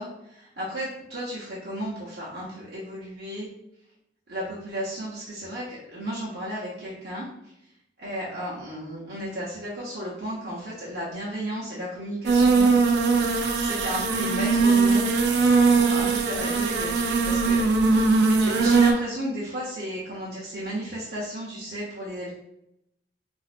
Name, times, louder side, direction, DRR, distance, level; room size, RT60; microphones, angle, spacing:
voice 1, 0.0-3.5 4.3-7.3 8.0-12.8 13.6-15.1 15.6-18.0 18.4-22.3, equal, 60° right, -8 dB, 0.8 m, -34 dB
sound 1, 12.2-18.9, right 4 dB, 75° right, 0.4 m, -20 dB
4.2 x 2.6 x 2.5 m, 0.82 s
head